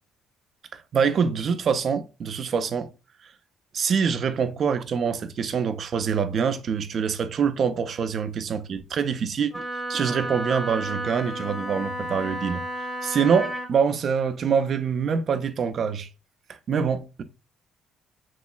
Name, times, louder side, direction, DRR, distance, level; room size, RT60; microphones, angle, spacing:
voice 1, 0.9-2.9 3.7-9.6 9.9-12.6 13.0-16.1 16.7-17.2, right 6 dB, 55° right, 0.4 m, -25 dB
Wind instrument woodwind instrument, 9.5-13.7, right 1 dB, ahead, 0.7 m, -32 dB
3.0 x 2.9 x 2.3 m
supercardioid pair, 75°, 0 cm